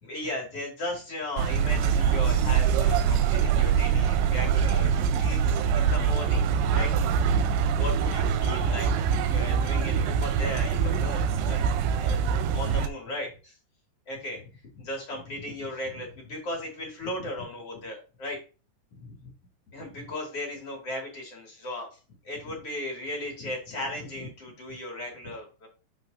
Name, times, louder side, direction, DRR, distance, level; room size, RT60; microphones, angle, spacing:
voice 1, 0.0-6.5 6.7-6.9 7.7-11.6 12.0-12.2 12.5-13.6 14.1-14.4 14.7-18.4 18.9-19.2 19.7-22.0 22.2-25.7, left 1 dB, 40° left, -1 dB, 2.8 m, -36 dB
sound 1, 1.4-12.9, right 7 dB, 90° right, 3.0 m, -24 dB
11.5 x 4.9 x 2.7 m, 0.34 s
omnidirectional pair, 5.1 m